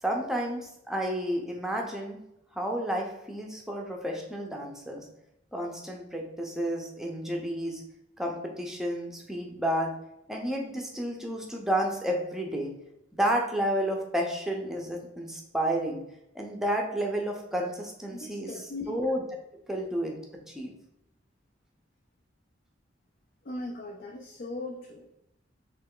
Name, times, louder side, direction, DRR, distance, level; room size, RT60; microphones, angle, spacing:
voice 1, 0.0-2.2 2.5-5.0 5.5-7.8 8.2-9.9 10.3-12.7 13.1-16.0 16.3-18.5 18.9-19.2 19.7-20.2 20.5-20.7, equal, 5° right, 0 dB, 0.6 m, -31 dB
voice 2, 18.1-19.0 23.4-25.1, left 2 dB, 50° left, 1 dB, 0.4 m, -39 dB
3.3 x 3.0 x 3.7 m, 0.83 s
head